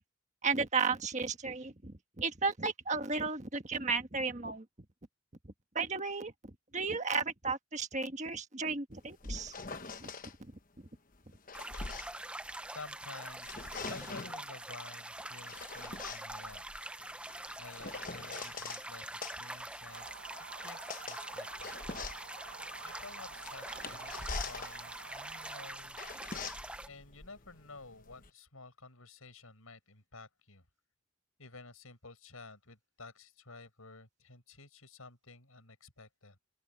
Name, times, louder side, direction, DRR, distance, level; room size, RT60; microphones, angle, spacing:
voice 1, 0.4-4.6 5.7-9.5 10.0-10.1 10.4-10.5, right 4 dB, 35° right, 1.5 m, -34 dB
sound 1, 8.9-10.3 11.1-12.9 13.3-14.4 15.2-18.8 19.2-28.3, left 4 dB, 40° left, 1.1 m, -44 dB
sound 2, 11.5-26.9, right 1 dB, 5° right, 0.7 m, -44 dB
voice 2, 12.7-20.2 20.6-21.7 22.8-26.0 26.9-30.6 31.4-36.4, left 3 dB, 90° left, 6.9 m, -52 dB
sound 3, 19.9-25.7, right 4 dB, 75° right, 1.5 m, -51 dB
open air
head